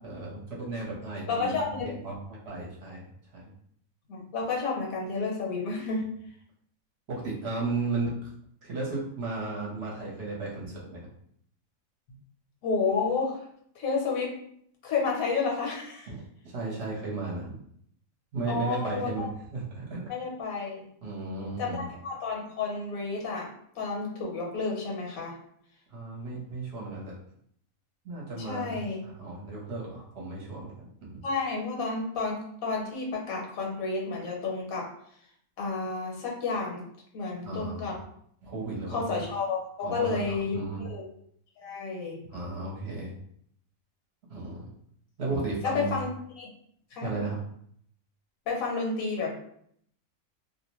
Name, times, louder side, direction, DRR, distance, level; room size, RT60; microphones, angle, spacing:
voice 1, 0.0-2.2 2.4-3.0 3.3-3.5 7.1-8.3 8.6-11.0 16.1-17.6 18.3-20.0 21.0-21.9 25.9-27.1 28.0-30.7 31.0-31.2 37.4-37.9 38.4-39.1 39.8-40.9 42.3-43.1 44.3-44.7 45.2-46.0 47.0-47.4, right 3 dB, 55° right, -5 dB, 0.9 m, -34 dB
voice 2, 1.3-1.9 4.1-6.1 12.6-13.4 13.7-14.3 14.8-16.1 18.5-19.3 20.1-20.8 21.6-23.5 23.8-25.3 28.4-29.0 31.2-34.9 35.6-36.8 37.1-38.0 38.9-41.0 41.6-42.2 45.6-46.1 46.4-46.5 46.9-47.1 48.5-49.3, left 4 dB, 75° left, -1 dB, 1.2 m, -31 dB
2.5 x 2.1 x 2.9 m, 0.67 s
omnidirectional pair, 1.5 m